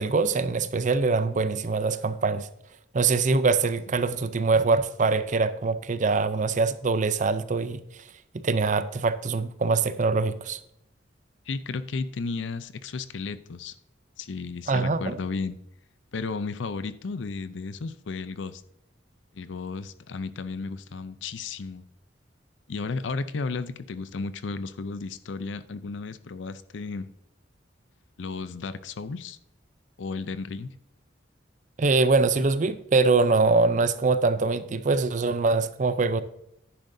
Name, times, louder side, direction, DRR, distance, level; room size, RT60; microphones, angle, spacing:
voice 1, 0.0-2.5 2.9-7.8 8.3-10.6 14.7-15.2 31.8-36.2, right 3 dB, 40° right, 13 dB, 0.5 m, -23 dB
voice 2, 11.5-13.7 14.2-15.6 16.1-18.6 19.3-21.8 22.7-27.1 28.2-29.4 30.0-30.7, left 4 dB, 75° left, 14 dB, 0.5 m, -33 dB
10.0 x 10.0 x 2.7 m, 0.77 s
head